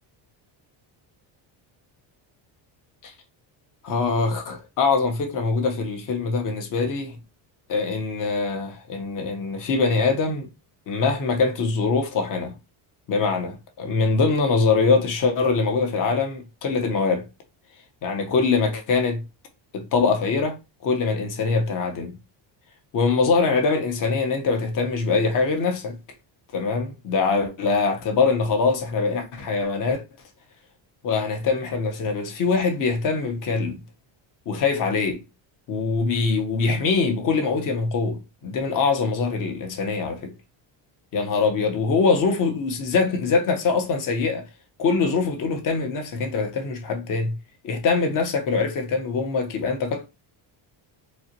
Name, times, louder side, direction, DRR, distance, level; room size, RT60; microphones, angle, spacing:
voice 1, 3.8-7.2 7.7-10.5 10.9-12.5 13.1-17.2 18.0-19.2 19.7-20.6 20.8-22.1 22.9-26.0 26.5-30.0 31.0-33.8 34.5-35.2 35.7-40.3 41.1-44.4 44.8-47.4 47.6-50.1, left 4 dB, 40° left, 0.9 m, -23 dB
4.1 x 2.9 x 2.9 m
cardioid pair, 175°, 49 cm